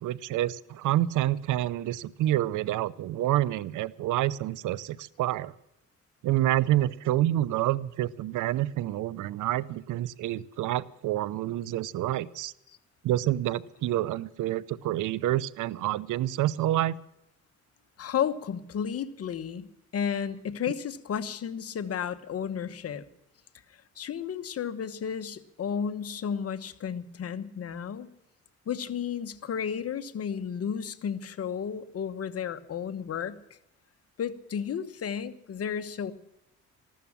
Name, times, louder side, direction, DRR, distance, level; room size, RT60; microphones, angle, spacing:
voice 1, 0.0-5.5 6.2-12.5 13.0-17.0, right 14 dB, 80° right, 21 dB, 0.7 m, -28 dB
voice 2, 18.0-23.0 24.0-28.1 28.7-33.4 34.2-36.1, left 8 dB, 50° left, 10 dB, 1.1 m, -33 dB
14.5 x 12.5 x 7.3 m, 0.84 s
cardioid pair, 90°, 30 cm